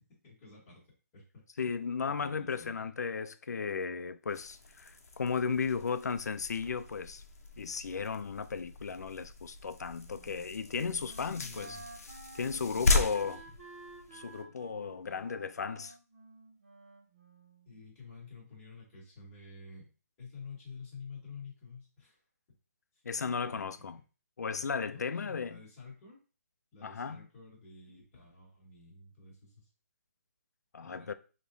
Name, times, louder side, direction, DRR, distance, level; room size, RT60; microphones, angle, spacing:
voice 1, 0.2-0.8 1.1-1.7 2.1-2.9 11.2-11.8 12.6-13.6 17.6-19.9 20.2-22.2 23.5-24.0 24.9-26.2 26.7-29.7 30.8-31.1, left 4 dB, 15° left, 1.7 m, -50 dB
voice 2, 1.6-7.2 7.6-11.8 12.3-13.4 14.1-15.9 23.0-24.0 24.4-25.6 26.8-27.3 30.7-31.1, left 5 dB, 80° left, 0.4 m, -35 dB
sound 1, 4.3-14.4, left 3 dB, 60° left, 0.8 m, -37 dB
Wind instrument woodwind instrument, 10.0-17.8, right 2 dB, 45° right, 1.6 m, -52 dB
4.8 x 3.0 x 2.6 m
hypercardioid pair, 175°, 9 cm